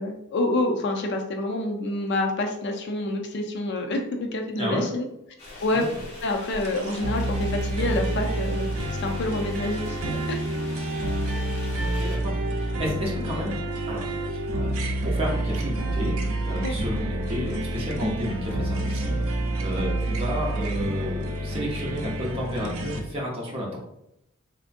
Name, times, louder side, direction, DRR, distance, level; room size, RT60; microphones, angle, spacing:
voice 1, 0.0-5.0 5.6-5.8 6.2-8.7 9.0-10.4 16.6-16.7, left 2 dB, 55° left, 3 dB, 0.4 m, -27 dB
voice 2, 4.6-4.9 5.7-6.0 11.8-13.5 13.9-16.2 16.4-23.8, equal, 25° right, -3 dB, 0.8 m, -32 dB
sound 1, 5.4-12.2, left 1 dB, 30° left, 0.9 m, -43 dB
sound 2, 6.6-23.0, right 1 dB, 80° right, 0.5 m, -28 dB
3.4 x 2.6 x 2.5 m, 0.82 s
head